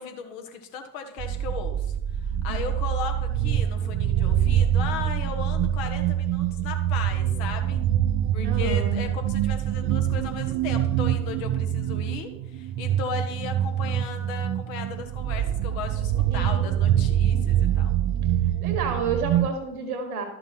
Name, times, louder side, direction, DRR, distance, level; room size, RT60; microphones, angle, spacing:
voice 1, 0.0-7.9 8.3-17.9, left 6 dB, 60° left, 5 dB, 1.4 m, -36 dB
sound 1, 1.2-19.5, right 11 dB, 35° right, 0.4 m, -25 dB
voice 2, 8.4-9.0 16.3-16.7 18.6-20.2, right 5 dB, 75° right, 5 dB, 1.7 m, -30 dB
12.0 x 5.7 x 4.5 m, 0.86 s
figure-of-eight pair, 55°, 44 cm